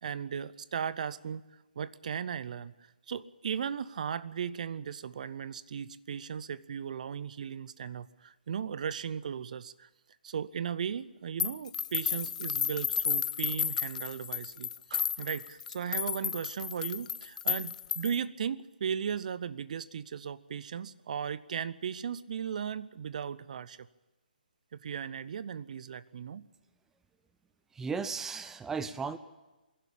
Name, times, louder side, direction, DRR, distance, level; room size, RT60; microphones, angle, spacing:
voice 1, 0.0-1.4 1.8-2.7 3.1-9.9 10.2-23.9 24.7-26.5, right 7 dB, 50° right, 18 dB, 0.7 m, -36 dB
sound 1, 11.4-18.2, left 8 dB, 50° left, 0.6 m, -33 dB
voice 2, 27.7-29.2, right 5 dB, 5° right, 14 dB, 0.6 m, -35 dB
23.5 x 11.0 x 10.0 m, 1.1 s
figure-of-eight pair, 140°, 5 cm